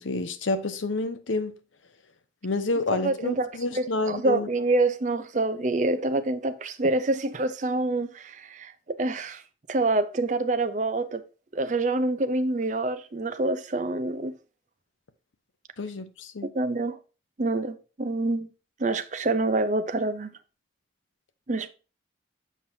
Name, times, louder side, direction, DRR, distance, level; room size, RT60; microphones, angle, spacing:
voice 1, 0.0-1.5 2.4-4.5 15.8-16.5, left 3 dB, 85° left, 0.7 m, -29 dB
voice 2, 2.9-9.4 9.7-11.2 11.5-14.3 16.5-17.0 17.4-18.5 18.8-20.3 21.5-21.7, right 2 dB, 40° right, 0.5 m, -26 dB
7.1 x 5.8 x 2.7 m
head